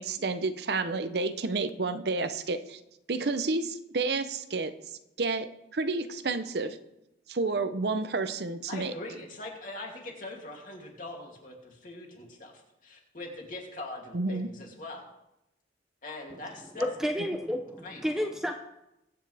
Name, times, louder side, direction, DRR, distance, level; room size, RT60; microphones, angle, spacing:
voice 1, 0.0-2.8 3.1-4.7 5.2-6.8 7.3-8.9 14.1-14.5, right 3 dB, 65° right, 10 dB, 0.7 m, -30 dB
voice 2, 8.7-12.5 12.8-15.1 16.0-16.9 17.8-18.0, left 2 dB, 45° left, -1 dB, 2.8 m, -42 dB
voice 3, 16.8-18.5, equal, 5° right, 3 dB, 0.7 m, -31 dB
22.0 x 8.9 x 3.4 m, 0.88 s
head